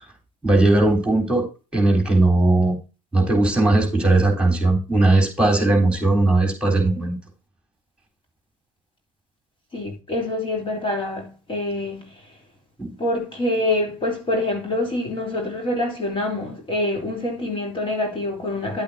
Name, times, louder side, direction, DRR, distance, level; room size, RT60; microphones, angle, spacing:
voice 1, 0.4-1.5 1.7-2.8 3.1-7.2 12.8-12.9, right 2 dB, 5° right, 4.0 m, -18 dB
voice 2, 9.7-12.1 13.0-18.8, left 1 dB, 30° left, 3.4 m, -26 dB
11.0 x 8.5 x 2.8 m
hypercardioid pair, 75°, 17 cm